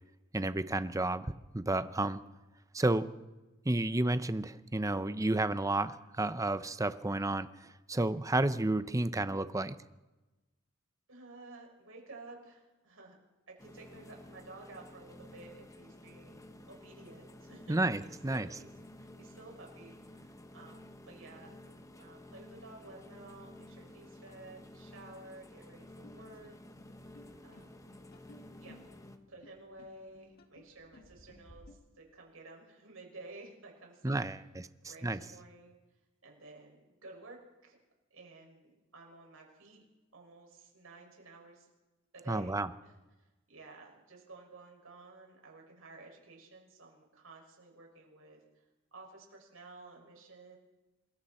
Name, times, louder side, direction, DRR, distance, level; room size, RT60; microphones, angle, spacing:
voice 1, 0.3-2.2 2.7-3.1 3.6-9.8 17.7-18.5 34.0-34.4 35.0-35.2 42.3-42.7, right 2 dB, 15° right, 12 dB, 0.7 m, -31 dB
voice 2, 11.1-13.2 13.5-18.7 19.0-21.6 22.0-26.6 27.4-27.9 28.6-28.7 29.3-34.2 34.8-35.8 36.2-37.8 38.1-39.8 40.1-41.7 42.1-48.6 48.9-50.6, right 2 dB, 80° right, 0 dB, 6.3 m, -53 dB
sound 1, 13.6-29.2, left 1 dB, 15° left, 1.1 m, -53 dB
sound 2, 26.0-31.7, left 1 dB, 50° left, 1.9 m, -58 dB
27.0 x 22.0 x 4.4 m, 1.1 s
head